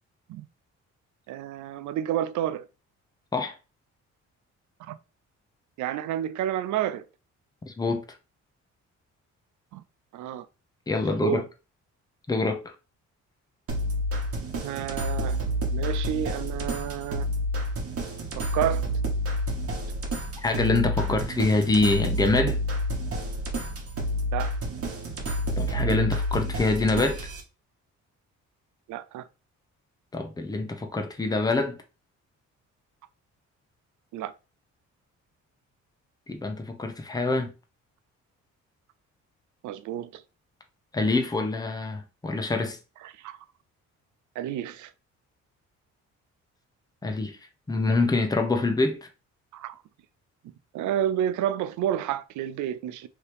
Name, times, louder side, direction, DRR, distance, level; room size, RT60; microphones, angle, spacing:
voice 1, 1.3-2.7 4.8-5.0 5.8-7.1 9.7-9.8 10.1-10.5 11.1-11.5 14.6-15.4 15.7-17.3 18.4-18.8 24.3-24.5 28.9-29.2 34.1-34.3 39.6-40.2 43.0-43.4 44.4-44.9 49.5-49.8 50.7-53.1, right 11 dB, 75° right, 0.5 m, -30 dB
voice 2, 7.6-8.0 10.9-11.4 12.3-12.6 20.4-22.6 25.6-27.2 30.1-31.8 36.3-37.5 40.9-42.8 47.0-47.4 47.7-49.0, left 3 dB, 15° left, 0.7 m, -25 dB
sound 1, 13.7-27.4, equal, 50° right, 1.2 m, -29 dB
2.8 x 2.8 x 3.3 m
cardioid pair, 90°, 30 cm